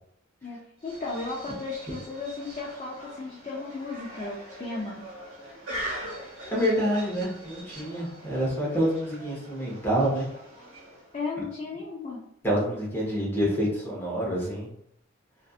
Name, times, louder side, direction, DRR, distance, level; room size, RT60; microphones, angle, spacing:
voice 1, 0.4-5.0 11.1-12.2, left 3 dB, 30° left, -4 dB, 0.4 m, -35 dB
sound 1, 0.8-11.2, right 1 dB, 70° right, 1.2 m, -42 dB
voice 2, 6.4-10.3 12.4-14.7, equal, 10° left, -5 dB, 0.8 m, -27 dB
2.5 x 2.4 x 2.4 m, 0.72 s
head